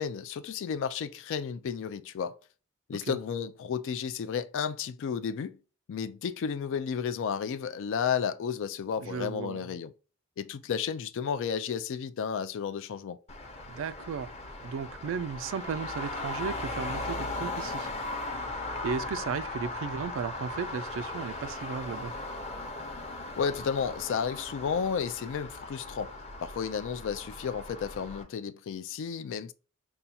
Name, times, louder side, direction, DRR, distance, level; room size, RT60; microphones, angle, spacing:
voice 1, 0.0-2.4 2.9-5.6 5.9-9.9 10.4-13.2 23.4-26.1 26.4-29.5, left 7 dB, 60° left, 0.3 m, -32 dB
voice 2, 9.0-9.6 13.7-14.3 14.6-17.9 18.8-22.1, right 6 dB, 65° right, 0.3 m, -35 dB
Traffic noise roadway noise, 13.3-28.2, left 2 dB, 30° left, 0.8 m, -38 dB
5.5 x 2.3 x 2.7 m
head